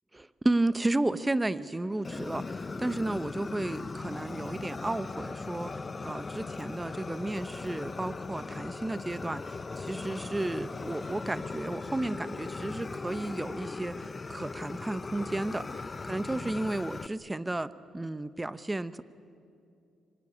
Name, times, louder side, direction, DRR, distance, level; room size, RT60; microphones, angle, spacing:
voice 1, 0.1-5.7 6.0-15.7 16.0-19.0, right 2 dB, 15° right, 14 dB, 1.0 m, -33 dB
Fire, 2.0-17.1, left 3 dB, 30° left, 0.7 m, -39 dB
26.0 x 25.0 x 8.8 m, 2.6 s
cardioid pair, 90°, 0 cm